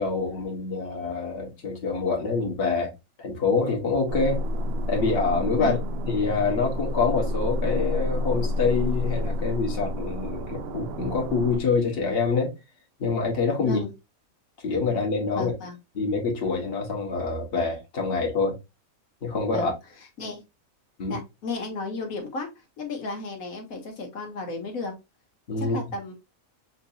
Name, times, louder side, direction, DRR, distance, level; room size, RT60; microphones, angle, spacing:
voice 1, 0.0-2.9 3.2-4.4 4.9-5.8 6.1-12.5 13.0-13.8 14.6-15.5 15.9-18.6 19.2-19.7 21.0-21.2 25.5-25.8, left 4 dB, 45° left, 1.4 m, -26 dB
sound 1, 4.1-11.6, left 1 dB, 65° right, 0.6 m, -29 dB
voice 2, 15.3-15.8 19.5-19.7 20.2-20.4 21.1-24.9 25.6-26.1, left 3 dB, 85° left, 1.4 m, -33 dB
5.8 x 2.7 x 2.6 m
omnidirectional pair, 1.4 m